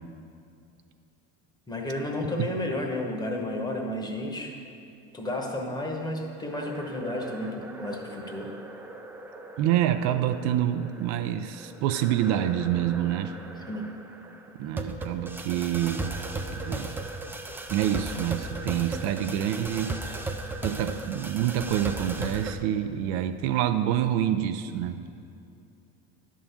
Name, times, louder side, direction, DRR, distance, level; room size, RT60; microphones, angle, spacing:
voice 1, 1.7-4.6 5.1-8.5 13.7-13.9, left 1 dB, 15° left, 1 dB, 1.0 m, -32 dB
sound 1, 6.5-22.5, right 2 dB, 5° right, 0.3 m, -37 dB
voice 2, 9.6-13.3 14.6-16.2 16.6-16.9 17.7-20.0 20.6-25.0, right 11 dB, 65° right, 9 dB, 0.5 m, -27 dB
10.0 x 3.7 x 7.0 m, 2.6 s
cardioid pair, 135°, 29 cm